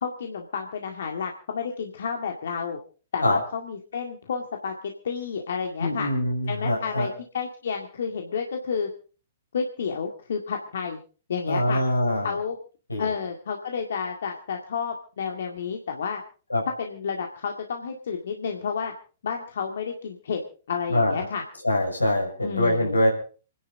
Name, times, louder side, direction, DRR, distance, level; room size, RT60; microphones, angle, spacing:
voice 1, 0.0-2.8 3.1-6.1 6.5-8.9 9.5-11.0 11.3-11.8 12.2-12.6 13.0-16.2 16.8-18.9 19.2-20.4 20.7-21.4 22.4-23.0, left 6 dB, 65° left, 3 dB, 2.0 m, -31 dB
voice 2, 5.8-7.1 11.5-12.4 12.9-13.1 16.5-16.6 20.9-21.3 21.6-23.1, left 1 dB, 90° left, 1 dB, 5.8 m, -24 dB
28.5 x 11.0 x 3.9 m, 0.38 s
figure-of-eight pair, 115°, 0 cm